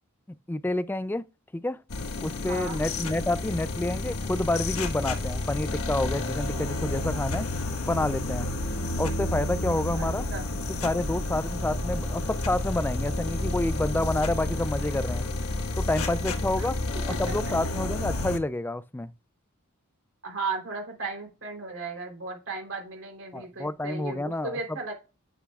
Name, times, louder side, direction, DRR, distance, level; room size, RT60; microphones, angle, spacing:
voice 1, 0.5-1.2 1.5-1.8 2.2-7.5 7.8-8.5 9.0-10.3 10.8-15.2 15.8-16.8 17.1-19.1 23.3-24.6, left 1 dB, 10° left, 0.3 m, -29 dB
sound 1, 1.9-18.4, left 2 dB, 90° left, 1.3 m, -30 dB
voice 2, 2.5-2.8 9.9-10.4 16.6-16.7 20.2-24.9, right 4 dB, 65° right, 3.5 m, -35 dB
8.3 x 8.0 x 2.3 m
head